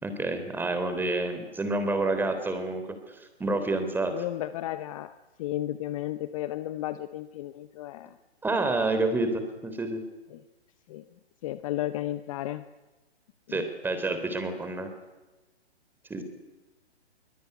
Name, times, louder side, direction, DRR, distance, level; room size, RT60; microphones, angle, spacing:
voice 1, 0.0-4.1 8.4-10.0 13.5-14.9 16.1-16.2, right 2 dB, 5° right, 8 dB, 3.4 m, -29 dB
voice 2, 4.1-8.2 10.3-10.4 10.9-11.0 11.4-12.6 13.5-13.6, left 14 dB, 30° left, 12 dB, 1.0 m, -34 dB
25.5 x 23.5 x 9.6 m, 1.1 s
hypercardioid pair, 140°, 33 cm